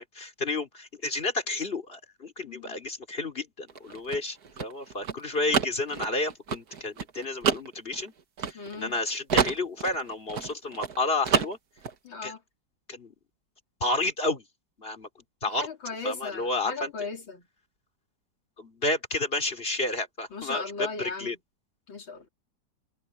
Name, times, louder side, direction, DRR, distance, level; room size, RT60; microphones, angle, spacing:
voice 1, 0.0-8.1 8.5-11.6 12.2-12.3 12.9-13.1 13.8-14.4 14.8-15.1 15.4-15.7 16.0-16.9 18.6-21.4, left 2 dB, 30° left, 3.5 m, -31 dB
voice 2, 2.4-2.8 8.5-9.0 12.0-12.4 15.6-17.5 20.3-21.4 21.9-22.3, left 4 dB, 80° left, 4.0 m, -37 dB
sound 1, 3.7-9.0 9.3-11.0 11.2-11.9, right 6 dB, 55° right, 1.9 m, -28 dB
omnidirectional pair, 2.1 m